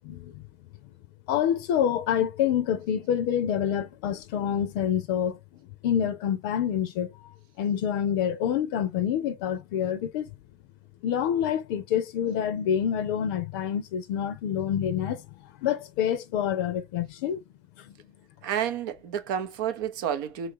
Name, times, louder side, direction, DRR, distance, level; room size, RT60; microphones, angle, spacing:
voice 1, 0.1-0.4 1.3-5.4 5.8-7.1 7.6-10.3 11.0-17.4 17.8-17.9, left 9 dB, 70° left, 0.5 m, -27 dB
voice 2, 18.4-20.5, right 9 dB, 75° right, 0.6 m, -30 dB
3.0 x 2.4 x 2.7 m
hypercardioid pair, 70°, 11 cm